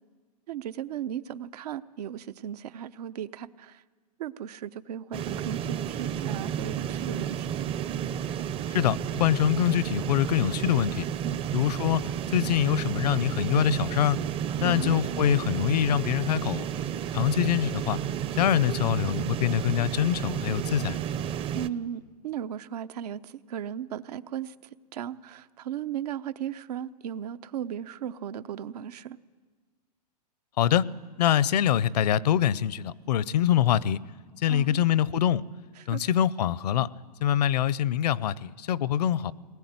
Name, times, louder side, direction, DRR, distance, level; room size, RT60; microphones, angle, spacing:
voice 1, 0.5-3.8 4.2-7.5 11.2-11.5 14.5-15.0 21.5-24.5 24.9-29.2 34.5-34.8 35.8-36.0, right 9 dB, 70° right, 13 dB, 0.9 m, -36 dB
sound 1, 5.1-21.7, right 9 dB, 25° right, 0.7 m, -31 dB
voice 2, 8.7-11.0 11.5-12.0 12.3-14.2 14.6-16.7 17.1-18.0 18.4-21.0 30.6-30.9 31.2-34.0 34.4-35.4 35.9-36.9 37.2-39.3, left 10 dB, 70° left, 20 dB, 0.8 m, -24 dB
22.0 x 20.0 x 9.6 m, 1.5 s
hypercardioid pair, 125°, 21 cm